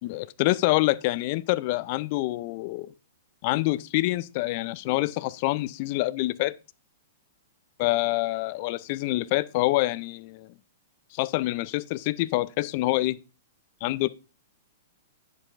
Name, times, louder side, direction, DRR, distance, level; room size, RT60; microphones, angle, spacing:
voice 1, 0.0-2.9 3.4-6.5 7.8-10.5 11.1-13.2 13.8-14.1, left 19 dB, 50° left, 0.5 m, -26 dB
10.0 x 7.3 x 2.6 m
hypercardioid pair, 115°, 0 cm